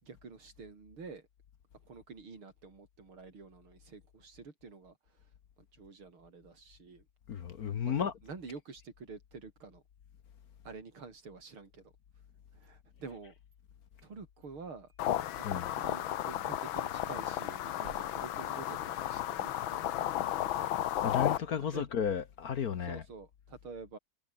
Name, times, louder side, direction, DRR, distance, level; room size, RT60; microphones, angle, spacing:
voice 1, 0.0-1.2 1.9-5.0 5.6-7.1 7.8-9.8 10.6-11.9 12.5-13.3 14.0-14.9 15.4-19.9 21.7-21.9 22.8-24.0, right 4 dB, 85° right, 4.8 m, -48 dB
voice 2, 7.3-8.1 15.4-15.7 21.0-23.0, left 8 dB, 50° left, 1.4 m, -33 dB
sound 1, 12.4-13.6 13.9-15.0 15.3-15.4 15.8-15.9 16.2-16.3 16.7-19.3, right 3 dB, 50° right, 5.1 m, -59 dB
sound 2, 15.0-21.4, left 12 dB, 75° left, 1.7 m, -33 dB
omnidirectional pair, 2.3 m